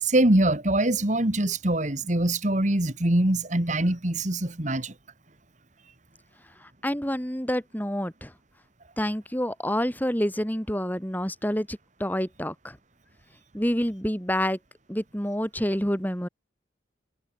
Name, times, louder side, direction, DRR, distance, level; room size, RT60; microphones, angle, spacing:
voice 1, 0.0-4.9, right 1 dB, 40° right, 2.0 m, -23 dB
voice 2, 6.6-8.3 9.0-12.8 13.5-14.6 14.9-16.3, equal, 10° left, 3.7 m, -28 dB
head